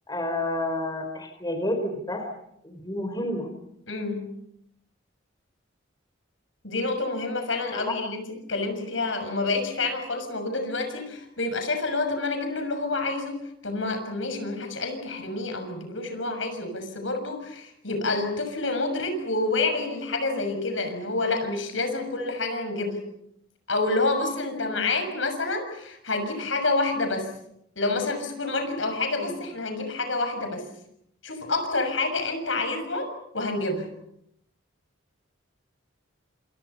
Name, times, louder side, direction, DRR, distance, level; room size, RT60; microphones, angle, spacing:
voice 1, 0.1-2.3 2.6-3.5 7.7-8.0 29.2-29.3, left 1 dB, 20° left, 5 dB, 4.8 m, -30 dB
voice 2, 3.9-4.3 6.6-8.2 8.5-23.0 23.7-27.3 27.8-30.6 31.2-33.9, left 3 dB, 75° left, 7 dB, 6.6 m, -28 dB
29.0 x 28.0 x 5.6 m, 0.75 s
head